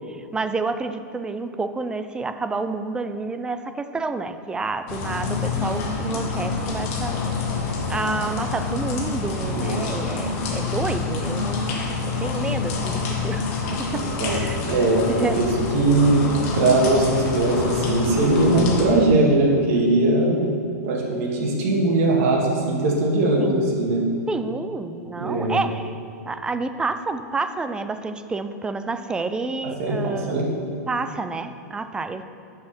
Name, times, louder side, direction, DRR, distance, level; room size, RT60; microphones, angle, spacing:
voice 1, 0.1-7.1 7.9-13.5 13.8-13.9 14.3-14.6 15.1-15.4 23.4-23.7 24.3-25.9 26.3-30.4 30.9-32.2, right 3 dB, 10° right, 10 dB, 0.3 m, -29 dB
sound 1, 4.9-18.9, left 4 dB, 50° left, 1.4 m, -27 dB
voice 2, 9.4-9.8 13.9-14.4 14.6-15.5 15.7-16.3 16.5-20.5 20.8-24.0 25.2-25.6 29.8-30.5, right 2 dB, 55° right, -2 dB, 2.1 m, -20 dB
11.5 x 4.8 x 4.3 m, 2.5 s
hypercardioid pair, 135°, 9 cm